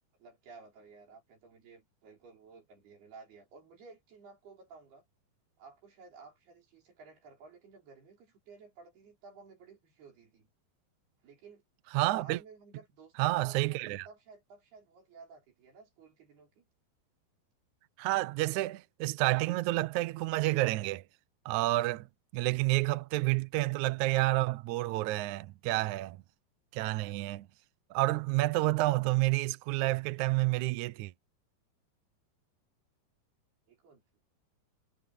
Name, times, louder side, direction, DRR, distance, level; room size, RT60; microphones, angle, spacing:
voice 1, 0.2-5.0 5.6-10.5 11.2-11.6 12.1-16.7 33.7-34.0, right 4 dB, 70° right, 7.4 m, -54 dB
voice 2, 11.9-12.4 13.2-14.1 18.0-21.0 21.5-22.1 22.3-26.2 26.7-27.5 27.9-31.1, right 19 dB, 90° right, 1.7 m, -29 dB
omnidirectional pair, 4.7 m